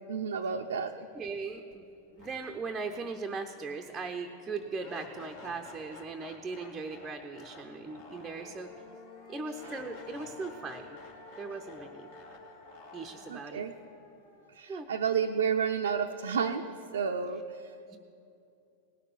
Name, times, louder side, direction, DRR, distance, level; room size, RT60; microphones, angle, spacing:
voice 1, 0.1-1.0 13.3-13.7 14.5-17.7, right 6 dB, 65° right, 2 dB, 0.6 m, -31 dB
voice 2, 1.1-1.9 2.1-8.7 9.3-11.0 11.4-12.1 12.9-13.6 14.7-14.9 17.9-18.0, right 4 dB, 15° right, 4 dB, 0.7 m, -39 dB
sound 1, 1.7-1.8 2.2-15.2, left 3 dB, 55° left, 2.4 m, -51 dB
18.5 x 6.7 x 9.2 m, 2.6 s
figure-of-eight pair, 90°, 0 cm